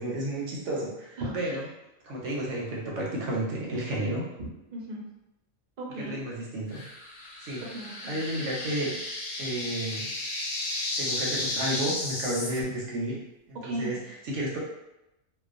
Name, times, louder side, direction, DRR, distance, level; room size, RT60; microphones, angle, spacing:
voice 1, 0.0-1.7 2.0-4.2 6.0-6.8 7.4-7.6 8.1-9.0 9.4-10.1 11.0-13.2 13.5-14.6, right 1 dB, 70° right, -4 dB, 0.8 m, -32 dB
voice 2, 4.4-5.0 5.8-6.2 7.6-8.2 13.6-14.0, right 1 dB, 50° right, -3 dB, 0.5 m, -36 dB
sound 1, 6.7-12.6, left 2 dB, 70° left, 0.9 m, -33 dB
2.3 x 2.2 x 2.4 m, 0.92 s
omnidirectional pair, 1.5 m